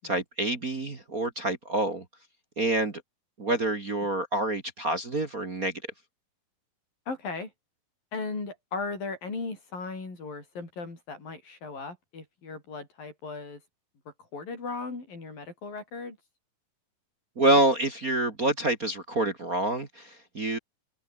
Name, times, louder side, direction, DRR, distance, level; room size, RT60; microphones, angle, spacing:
voice 1, 0.0-2.0 2.6-3.0 3.4-5.7 17.4-20.6, right 2 dB, 30° right, 2.0 m, -27 dB
voice 2, 7.1-7.5 8.1-13.6 14.3-16.2, left 4 dB, 85° left, 9.5 m, -37 dB
open air
omnidirectional pair, 3.9 m